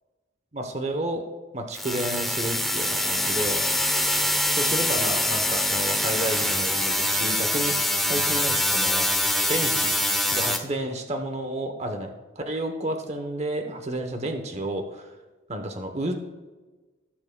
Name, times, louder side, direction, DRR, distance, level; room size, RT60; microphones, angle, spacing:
voice 1, 0.5-1.2 1.5-3.6 4.5-7.8 8.0-9.1 9.5-10.0 10.3-12.1 12.4-15.1 15.5-16.2, right 1 dB, 35° right, 5 dB, 0.8 m, -31 dB
sound 1, 1.7-10.6, left 1 dB, ahead, 0.7 m, -24 dB
17.5 x 7.2 x 2.2 m, 1.2 s
head